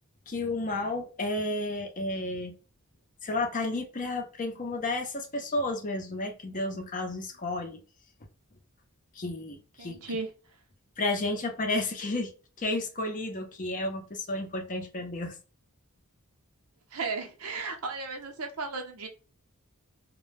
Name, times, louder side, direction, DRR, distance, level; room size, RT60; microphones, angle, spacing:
voice 1, 0.3-2.5 3.2-7.8 9.1-10.0 11.0-12.3 12.6-15.4, left 2 dB, 35° left, 0.6 m, -32 dB
voice 2, 9.8-10.3 16.9-19.1, right 4 dB, 85° right, 0.7 m, -35 dB
2.2 x 2.1 x 3.1 m
head